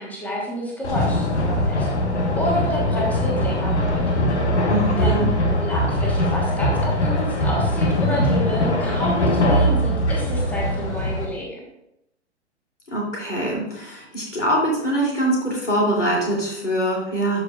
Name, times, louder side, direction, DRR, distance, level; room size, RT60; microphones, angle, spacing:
voice 1, 0.0-1.9 2.4-4.0 4.9-5.2 5.6-11.6, equal, 5° left, -2 dB, 1.2 m, -29 dB
sound 1, 0.8-11.3, left 1 dB, 70° left, 1.3 m, -21 dB
voice 2, 4.7-5.3 12.9-17.4, right 1 dB, 85° left, -3 dB, 2.9 m, -23 dB
12.0 x 4.9 x 2.4 m, 0.82 s
figure-of-eight pair, 115°, 35 cm